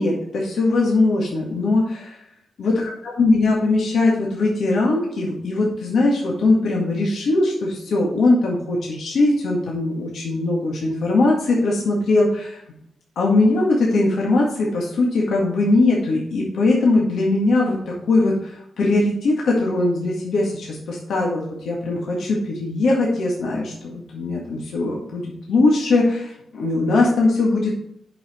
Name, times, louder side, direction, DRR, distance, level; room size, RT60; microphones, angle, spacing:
voice 1, 0.0-2.2 2.6-12.6 13.1-27.7, left 2 dB, 80° left, -3 dB, 1.8 m, -20 dB
7.8 x 5.9 x 4.4 m, 0.76 s
cardioid pair, 90°, 0 cm